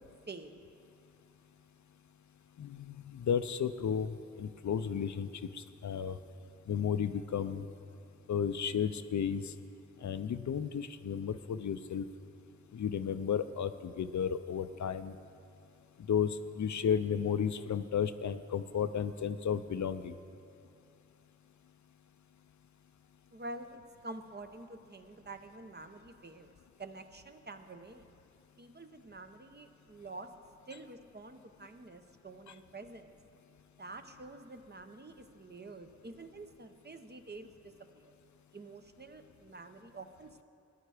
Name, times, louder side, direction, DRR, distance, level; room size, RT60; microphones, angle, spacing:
voice 1, 0.3-0.6 23.3-26.5 26.8-28.1 28.6-30.3 30.7-33.2 33.8-38.1 38.5-40.4, right 2 dB, 35° right, 7 dB, 0.8 m, -48 dB
voice 2, 2.6-5.3 5.5-6.2 6.7-7.6 8.3-9.4 10.0-12.1 12.7-15.2 16.1-20.1, left 8 dB, 75° left, 11 dB, 0.5 m, -33 dB
14.5 x 10.0 x 4.9 m, 2.6 s
wide cardioid pair, 60°, 29 cm